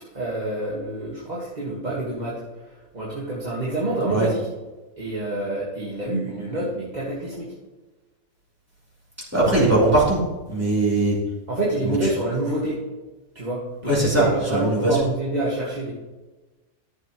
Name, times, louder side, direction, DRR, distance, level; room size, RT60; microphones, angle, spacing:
voice 1, 0.1-4.5 5.0-7.5 11.5-12.8 13.3-15.9, right 1 dB, 25° right, -6 dB, 1.8 m, -27 dB
voice 2, 9.3-10.2 10.5-11.2 13.8-15.0, right 2 dB, 10° right, -7 dB, 3.4 m, -20 dB
14.0 x 7.3 x 3.1 m, 1.2 s
omnidirectional pair, 1.7 m